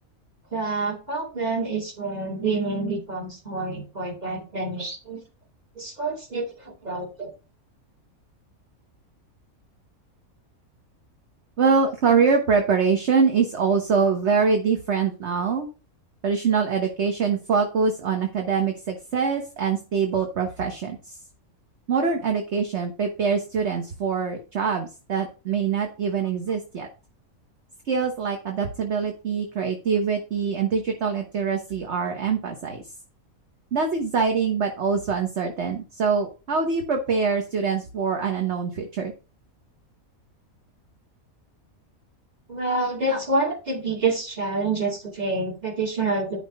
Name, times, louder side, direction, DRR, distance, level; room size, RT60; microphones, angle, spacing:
voice 1, 0.5-5.2 5.8-7.3 42.5-46.4, right 3 dB, 30° right, 0 dB, 2.5 m, -27 dB
voice 2, 11.6-15.7 16.2-21.2 21.9-26.9 27.9-32.8 33.7-39.1, right 5 dB, 50° right, 3 dB, 1.4 m, -24 dB
10.5 x 6.0 x 4.0 m, 0.33 s
omnidirectional pair, 1.5 m